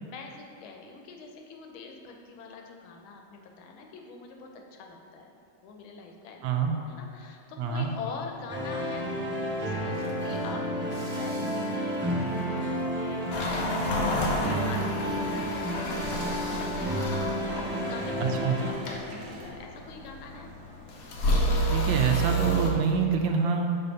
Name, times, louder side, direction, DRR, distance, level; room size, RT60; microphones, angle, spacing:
voice 1, 0.0-5.3 5.6-6.5 6.8-20.5, left 4 dB, 80° left, 2 dB, 1.5 m, -44 dB
voice 2, 6.4-6.8 7.6-7.9 18.2-18.6 21.7-23.7, right 6 dB, 75° right, 3 dB, 1.3 m, -26 dB
sound 1, 7.7-19.5, right 2 dB, 55° right, 1.1 m, -48 dB
sound 2, 8.5-18.7, equal, 15° right, 0.4 m, -31 dB
sound 3, 13.3-22.7, right 1 dB, 65° left, 0.9 m, -30 dB
5.9 x 4.0 x 5.2 m, 2.5 s
omnidirectional pair, 2.2 m